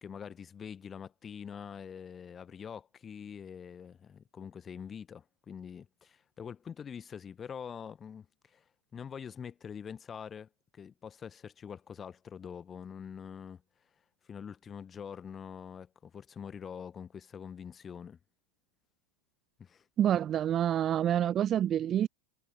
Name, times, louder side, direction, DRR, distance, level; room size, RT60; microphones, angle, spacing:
voice 1, 0.0-8.6 8.9-13.6 14.3-18.2 19.6-19.8, left 7 dB, 20° left, 1.2 m, -45 dB
voice 2, 20.0-22.1, right 10 dB, 30° right, 0.5 m, -27 dB
figure-of-eight pair, 90°, 0 cm